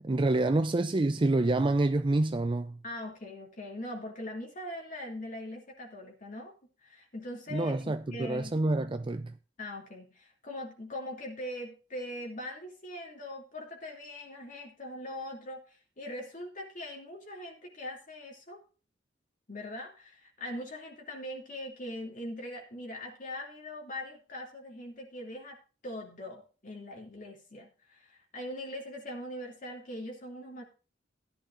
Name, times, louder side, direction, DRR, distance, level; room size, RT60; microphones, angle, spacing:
voice 1, 0.0-2.8 7.5-9.4, right 2 dB, 30° right, 0.5 m, -27 dB
voice 2, 2.8-6.5 6.8-8.5 9.6-18.6 19.5-25.6 25.8-30.6, left 1 dB, 45° left, 2.7 m, -41 dB
15.5 x 11.0 x 2.6 m
head